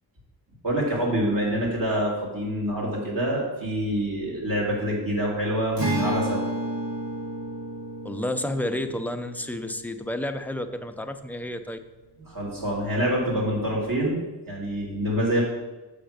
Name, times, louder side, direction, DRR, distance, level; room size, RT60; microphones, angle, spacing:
voice 1, 0.6-6.4 12.3-14.2 14.5-15.4, equal, 50° right, -4 dB, 2.9 m, -26 dB
Acoustic guitar, 5.8-11.2, right 1 dB, 90° right, 2.2 m, -32 dB
voice 2, 8.0-11.8, left 1 dB, 5° left, 7 dB, 0.5 m, -30 dB
6.8 x 5.8 x 5.1 m, 1.1 s
wide cardioid pair, 90°, 41 cm